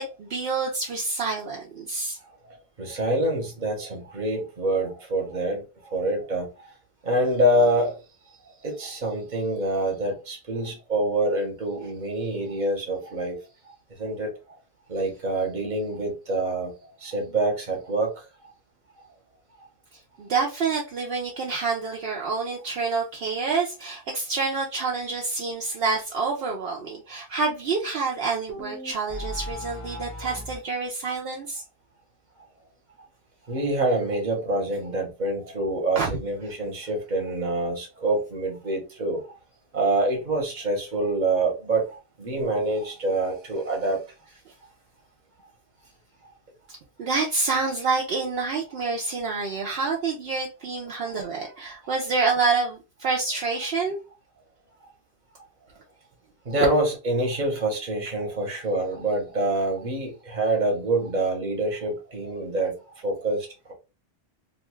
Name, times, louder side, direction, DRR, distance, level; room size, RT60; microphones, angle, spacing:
voice 1, 0.0-2.2 20.2-31.6 36.0-36.1 46.7-54.0, right 4 dB, 70° right, 0.8 m, -27 dB
voice 2, 2.8-5.6 5.9-6.5 7.0-7.9 8.6-13.4 14.0-14.3 14.9-16.7 17.0-18.1 33.5-39.2 39.7-44.0 51.8-51.9 56.5-62.7 63.0-63.7, right 2 dB, 45° right, 1.1 m, -26 dB
sound 1, 28.5-30.6, equal, 15° left, 0.7 m, -36 dB
2.8 x 2.3 x 3.0 m
omnidirectional pair, 1.1 m